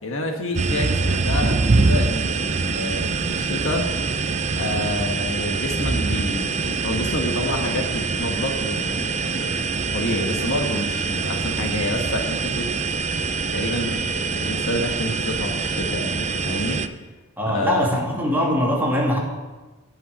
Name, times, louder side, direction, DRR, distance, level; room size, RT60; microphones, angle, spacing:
voice 1, 0.0-3.9 4.5-9.5 9.9-12.7 13.5-16.8 17.5-17.9, left 1 dB, 65° left, 3 dB, 1.5 m, -28 dB
sound 1, 0.6-16.9, right 4 dB, 35° right, 0.5 m, -24 dB
voice 2, 17.4-19.2, equal, 10° right, -4 dB, 2.5 m, -22 dB
10.5 x 5.8 x 8.5 m, 1.2 s
head